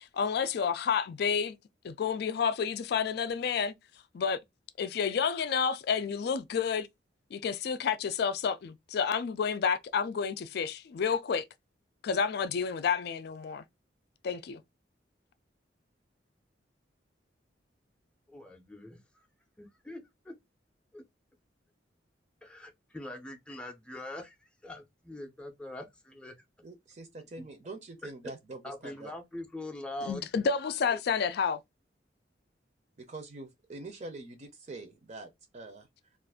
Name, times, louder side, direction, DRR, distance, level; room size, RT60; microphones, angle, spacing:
voice 1, 0.0-1.6 1.8-3.7 4.1-4.4 4.8-6.9 7.3-11.5 12.0-13.6 14.2-14.6 30.0-31.6, left 6 dB, 60° left, 0.4 m, -30 dB
voice 2, 18.3-19.3 19.6-20.4 20.9-21.0 22.4-26.3 27.4-27.5 28.0-28.1 28.6-30.3 30.9-31.0, left 1 dB, 5° left, 0.5 m, -43 dB
voice 3, 26.6-29.1 33.0-35.9, right 2 dB, 40° right, 0.5 m, -45 dB
2.5 x 2.4 x 3.4 m
head